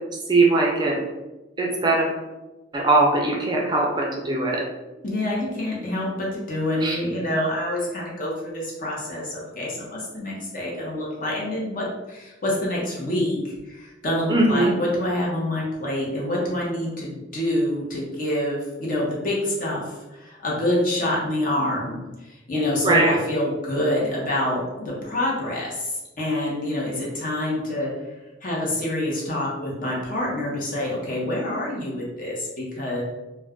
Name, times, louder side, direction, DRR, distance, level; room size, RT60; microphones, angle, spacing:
voice 1, 0.3-1.0 1.6-2.1 2.7-4.6 6.8-7.0 14.3-14.7 22.8-23.1, right 2 dB, 25° right, -2 dB, 0.4 m, -20 dB
voice 2, 5.0-13.4 13.7-19.8 20.1-22.0 22.5-25.9 26.2-27.9 28.4-33.0, left 1 dB, 45° left, -4 dB, 0.8 m, -26 dB
2.4 x 2.2 x 3.5 m, 1.1 s
head